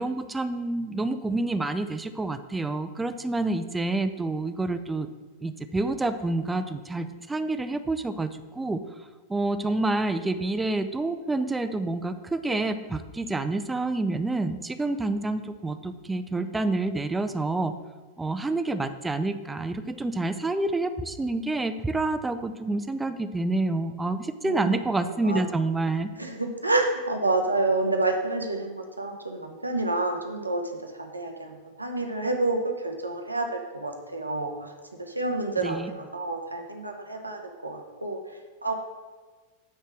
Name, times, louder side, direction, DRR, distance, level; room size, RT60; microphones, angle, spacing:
voice 1, 0.0-5.1 5.4-8.8 9.3-17.7 18.2-26.1 35.6-35.9, right 2 dB, 10° right, 10 dB, 0.5 m, -28 dB
voice 2, 25.0-25.4 26.2-34.7 35.0-38.2 38.6-38.7, right 2 dB, 85° right, 3 dB, 0.8 m, -29 dB
9.0 x 3.3 x 6.1 m, 1.3 s
figure-of-eight pair, 90°, 0 cm